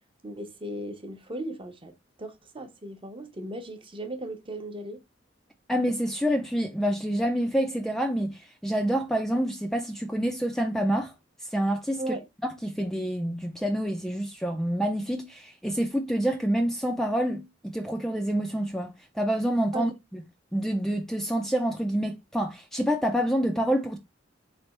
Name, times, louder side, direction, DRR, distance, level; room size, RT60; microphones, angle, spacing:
voice 1, 0.2-1.9 2.2-5.0 12.0-12.2 19.7-19.9, right 1 dB, 30° right, 0.8 m, -36 dB
voice 2, 5.7-11.1 11.5-12.0 12.6-20.2 20.5-24.0, equal, ahead, 0.4 m, -27 dB
3.8 x 3.3 x 4.1 m
head